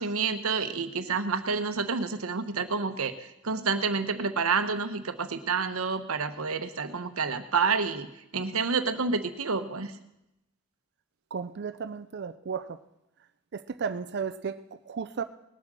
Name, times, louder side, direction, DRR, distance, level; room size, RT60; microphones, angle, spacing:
voice 1, 0.0-8.1 8.3-9.9, right 5 dB, 85° right, 9 dB, 1.0 m, -29 dB
voice 2, 11.3-12.8 13.5-15.2, right 6 dB, 55° right, 12 dB, 0.5 m, -34 dB
19.5 x 7.6 x 6.2 m, 0.88 s
head